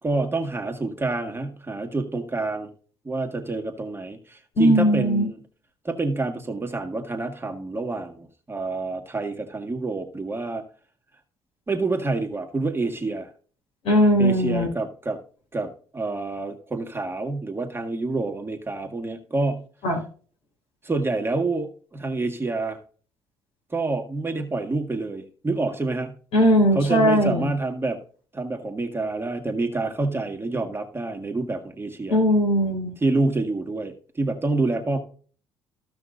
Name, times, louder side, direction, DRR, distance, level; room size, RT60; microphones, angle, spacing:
voice 1, 0.0-2.7 3.0-5.4 5.8-10.6 11.7-13.3 14.2-15.2 15.5-19.6 20.8-22.8 23.7-26.1 26.7-28.0 28.3-32.2 33.0-35.0, right 3 dB, 20° right, 4 dB, 1.8 m, -27 dB
voice 2, 4.5-5.2 13.8-14.7 19.8-20.0 26.3-27.5 32.1-33.0, equal, 65° left, 0 dB, 4.6 m, -19 dB
15.0 x 5.7 x 2.6 m, 0.42 s
supercardioid pair, 60°, 11 cm